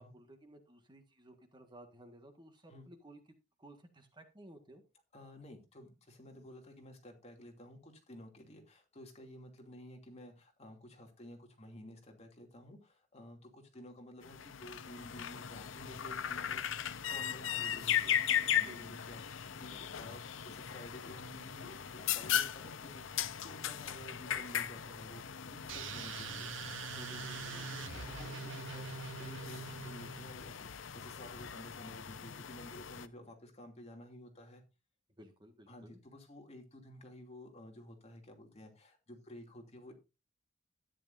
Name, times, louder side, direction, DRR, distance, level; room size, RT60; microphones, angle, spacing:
voice 1, 0.0-3.2 3.6-4.8 18.7-18.9 19.7-19.8 26.9-27.7 28.0-28.3 35.2-36.0, right 1 dB, 25° right, 6 dB, 1.6 m, -55 dB
voice 2, 5.1-26.5 27.6-34.6 35.7-39.9, left 1 dB, 35° left, 2 dB, 2.7 m, -53 dB
sound 1, 14.2-33.1, left 9 dB, 90° left, 0.7 m, -38 dB
sound 2, 25.7-30.4, right 6 dB, 70° right, 0.7 m, -44 dB
13.0 x 10.0 x 2.7 m, 0.28 s
head